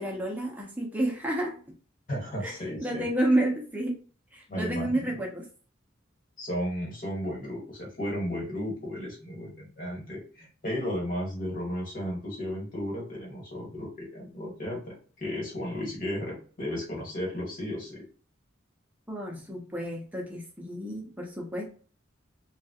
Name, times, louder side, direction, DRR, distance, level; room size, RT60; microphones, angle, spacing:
voice 1, 0.0-1.6 2.4-2.6 2.8-3.9 4.3-5.4 19.1-21.7, right 1 dB, 10° right, 0 dB, 0.7 m, -30 dB
voice 2, 2.1-3.1 4.5-5.2 6.4-18.0, equal, 45° left, -2 dB, 1.4 m, -34 dB
2.9 x 2.3 x 2.8 m, 0.40 s
head